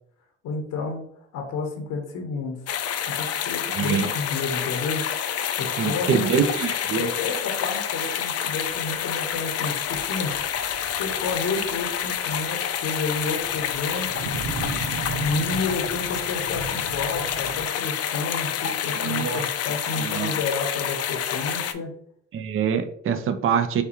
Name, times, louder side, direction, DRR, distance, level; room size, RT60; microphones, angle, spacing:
voice 1, 0.4-1.0 1.3-2.7 3.1-6.5 7.0-10.4 10.7-14.3 15.0-21.9, left 4 dB, 90° left, 3 dB, 1.1 m, -31 dB
sound 1, 2.7-21.7, left 9 dB, 55° left, 0.5 m, -28 dB
voice 2, 3.7-4.1 5.8-7.1 19.0-19.4 20.0-20.3 22.3-23.8, right 7 dB, 45° right, 9 dB, 0.5 m, -25 dB
sound 2, 8.5-17.6, right 3 dB, 80° right, 0.8 m, -37 dB
6.5 x 2.4 x 2.9 m, 0.64 s
cardioid pair, 90°, 30 cm